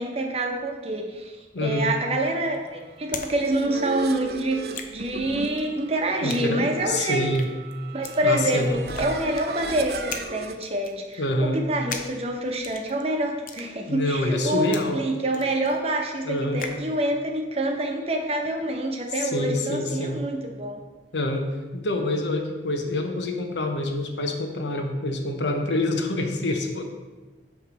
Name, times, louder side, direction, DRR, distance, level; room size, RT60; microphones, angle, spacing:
voice 1, 0.0-1.4 1.6-4.6 4.9-7.3 7.9-10.0 10.3-20.8, right 1 dB, 35° right, 2 dB, 0.9 m, -26 dB
voice 2, 1.5-1.9 6.2-7.5 8.2-8.7 11.2-11.6 13.9-15.0 16.2-16.7 19.2-20.2 21.1-21.5 21.7-26.8, left 1 dB, 85° left, 4 dB, 0.9 m, -26 dB
sound 1, 1.9-3.3 3.6-16.9, left 5 dB, 50° left, 0.6 m, -40 dB
sound 2, 3.0-10.6, right 4 dB, 60° right, 0.5 m, -36 dB
8.2 x 3.3 x 6.3 m, 1.3 s
head